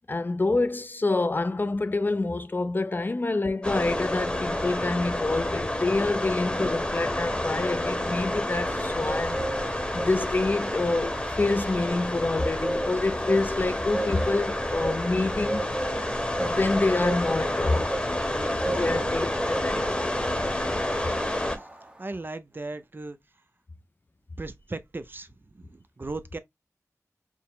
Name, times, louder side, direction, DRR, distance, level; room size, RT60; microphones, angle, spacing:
voice 1, 0.1-9.4 9.9-15.7 16.4-18.0 18.6-20.1, left 3 dB, 35° left, 0.4 m, -27 dB
sound 1, 3.6-21.6, left 1 dB, 15° left, 1.0 m, -29 dB
Bird, 7.4-22.1, right 1 dB, 20° right, 0.9 m, -36 dB
voice 2, 22.0-23.2 24.4-26.4, right 2 dB, 35° right, 0.5 m, -37 dB
4.6 x 2.0 x 3.6 m
wide cardioid pair, 70°, 6 cm